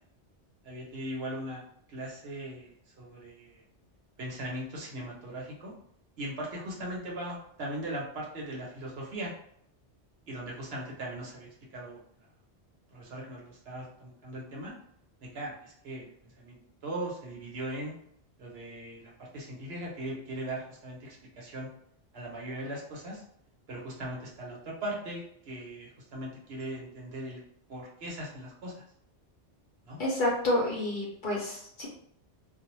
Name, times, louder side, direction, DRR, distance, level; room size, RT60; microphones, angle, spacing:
voice 1, 0.6-3.6 4.2-5.7 6.2-9.3 10.3-12.3 12.9-14.7 15.2-17.9 18.4-21.7 22.1-23.2 23.7-27.4 27.7-28.8 29.8-30.0, right 1 dB, 65° right, -3 dB, 1.0 m, -39 dB
voice 2, 30.0-31.9, left 1 dB, 55° left, -3 dB, 0.7 m, -29 dB
2.3 x 2.1 x 3.0 m, 0.69 s
omnidirectional pair, 1.2 m